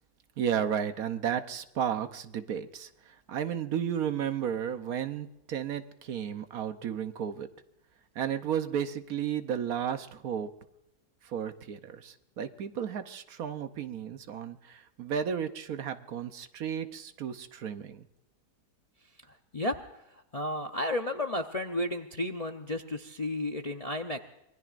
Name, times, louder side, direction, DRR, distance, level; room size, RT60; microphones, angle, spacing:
voice 1, 0.4-7.5 8.1-10.5 11.2-18.1, right 8 dB, 65° right, 9 dB, 1.2 m, -33 dB
voice 2, 19.3-19.8 20.1-24.2, left 1 dB, 35° left, 4 dB, 0.6 m, -33 dB
26.0 x 20.0 x 2.5 m, 0.88 s
omnidirectional pair, 1.7 m